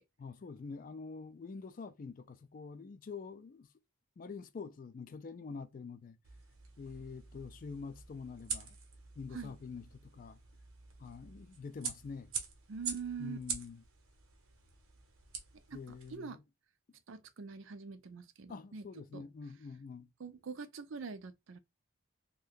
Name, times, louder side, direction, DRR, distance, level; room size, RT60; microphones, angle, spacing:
voice 1, 0.2-3.7 4.2-6.2 6.8-8.8 9.2-10.4 11.0-12.3 13.2-13.8 15.7-16.4 18.5-20.1, left 5 dB, 40° left, 0.3 m, -46 dB
sound 1, 6.2-16.2, right 6 dB, 80° right, 0.9 m, -46 dB
voice 2, 12.7-13.4 15.7-15.8 16.1-16.4 17.1-18.8 19.1-19.2 20.2-21.6, right 5 dB, 65° right, 0.4 m, -44 dB
2.6 x 2.2 x 3.5 m
head